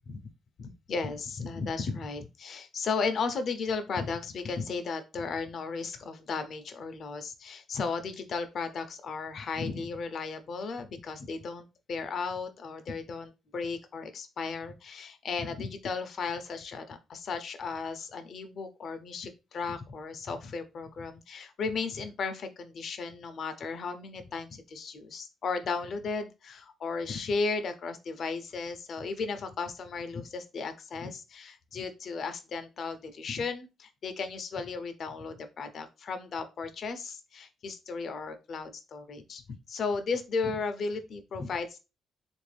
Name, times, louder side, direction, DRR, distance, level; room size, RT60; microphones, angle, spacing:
voice 1, 0.6-39.4 39.7-41.8, left 4 dB, 55° left, 9 dB, 0.6 m, -35 dB
3.5 x 2.5 x 3.3 m, 0.28 s
cardioid pair, 90°, 0 cm